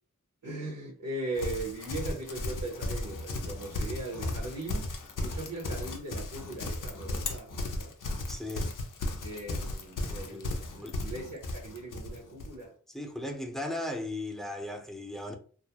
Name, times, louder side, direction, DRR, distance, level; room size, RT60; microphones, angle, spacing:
voice 1, 0.4-7.9 9.2-12.7, right 2 dB, 85° right, 0.8 m, -39 dB
Livestock farm animals working animals, 1.4-12.6, left 2 dB, 90° left, 0.5 m, -35 dB
voice 2, 8.3-8.7 10.3-10.4 10.8-11.0 12.9-15.3, left 1 dB, ahead, 0.5 m, -37 dB
2.4 x 2.0 x 2.8 m
wide cardioid pair, 50°, 31 cm